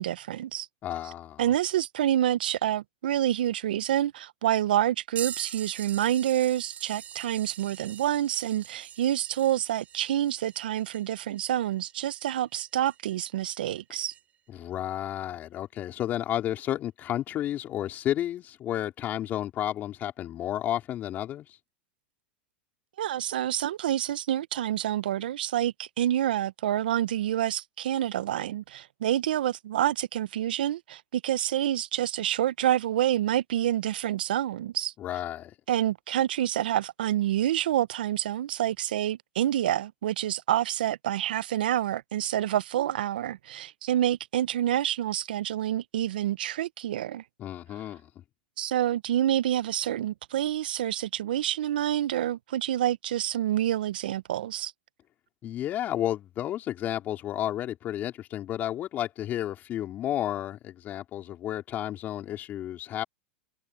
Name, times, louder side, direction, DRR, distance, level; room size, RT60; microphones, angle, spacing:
voice 1, 0.0-0.7 1.4-14.1 23.0-34.9 35.7-47.2 48.6-54.7, right 12 dB, 75° right, 0.8 m, -27 dB
voice 2, 0.8-1.4 14.5-21.5 35.0-35.5 47.4-48.1 55.4-63.0, left 12 dB, 35° left, 4.3 m, -32 dB
sound 1, 5.2-13.4 14.1-14.2 16.5-16.6 17.6-17.8 18.8-18.9, right 9 dB, 30° right, 4.3 m, -43 dB
hypercardioid pair, 110°, 5 cm